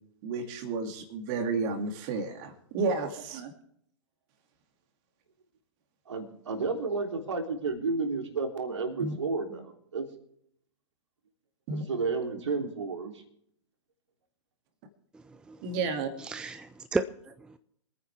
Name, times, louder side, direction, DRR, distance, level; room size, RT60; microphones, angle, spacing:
voice 1, 0.2-3.5 9.0-9.1 11.7-11.8 15.6-16.1, right 4 dB, 40° right, 6 dB, 2.4 m, -31 dB
voice 2, 6.1-10.0 11.7-13.1, right 4 dB, 65° right, 4 dB, 3.3 m, -31 dB
voice 3, 15.1-15.6 16.2-17.6, right 3 dB, 5° right, 12 dB, 0.5 m, -34 dB
26.0 x 9.7 x 3.5 m, 0.70 s
figure-of-eight pair, 110°, 16 cm